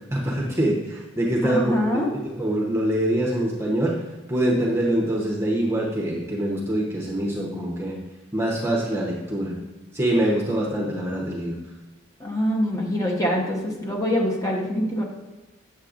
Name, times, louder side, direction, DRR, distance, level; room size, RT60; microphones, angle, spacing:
voice 1, 0.1-1.8 2.4-4.0 4.3-7.9 8.3-9.6 9.9-11.6, right 1 dB, 15° right, -3 dB, 0.8 m, -24 dB
voice 2, 1.4-2.1 12.2-15.0, equal, 15° left, -2 dB, 1.1 m, -24 dB
8.3 x 6.8 x 2.5 m, 1.1 s
head